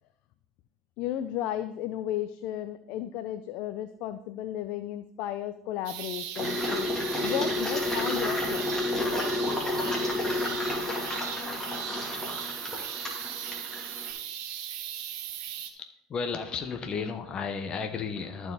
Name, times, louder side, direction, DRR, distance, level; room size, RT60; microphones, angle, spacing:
voice 1, 1.0-6.9 7.2-8.7, left 12 dB, 65° left, 11 dB, 0.5 m, -34 dB
sound 1, 5.9-15.7, right 10 dB, 65° right, 1.1 m, -37 dB
Engine, 6.3-14.1, left 2 dB, 15° left, 2.7 m, -31 dB
voice 2, 15.7-18.5, left 5 dB, 40° left, 6 dB, 1.1 m, -33 dB
14.0 x 4.8 x 4.0 m, 0.75 s
hypercardioid pair, 80°, 2 cm